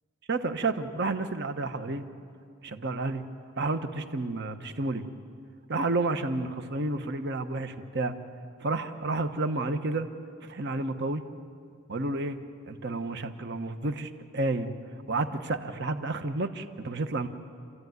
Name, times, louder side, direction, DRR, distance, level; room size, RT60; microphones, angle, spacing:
voice 1, 0.3-2.0 2.6-3.2 3.6-5.1 5.7-8.1 8.6-10.1 10.4-11.2 11.9-12.4 12.7-14.7 15.1-17.3, right 2 dB, 55° right, 9 dB, 1.1 m, -30 dB
28.5 x 14.5 x 9.4 m, 2.3 s
head